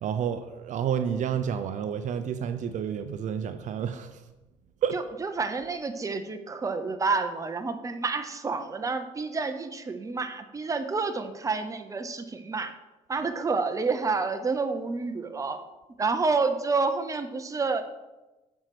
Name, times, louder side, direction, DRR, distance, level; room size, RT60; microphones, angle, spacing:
voice 1, 0.0-4.2 4.8-5.0, right 8 dB, 60° right, 9 dB, 0.5 m, -30 dB
voice 2, 4.9-12.7 13.1-15.6 16.0-17.8, right 4 dB, 25° right, 8 dB, 0.8 m, -29 dB
7.6 x 4.6 x 6.0 m, 1.1 s
cardioid pair, 95°, 14 cm